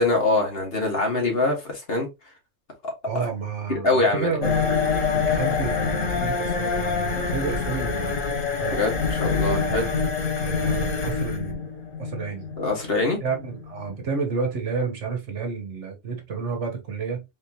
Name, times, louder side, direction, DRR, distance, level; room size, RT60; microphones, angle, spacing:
voice 1, 0.0-2.1 3.2-3.3 3.7-4.3 8.8-8.9 9.2-9.9 12.6-13.2, left 3 dB, 50° left, 1.8 m, -23 dB
voice 2, 3.0-4.7 5.1-8.2 8.6-8.8 9.4-9.9 10.4-11.7 12.0-12.5 13.2-17.2, right 5 dB, 65° right, 1.5 m, -30 dB
sound 1, 4.4-14.0, left 5 dB, 85° left, 1.8 m, -26 dB
4.2 x 3.7 x 2.9 m
omnidirectional pair, 1.3 m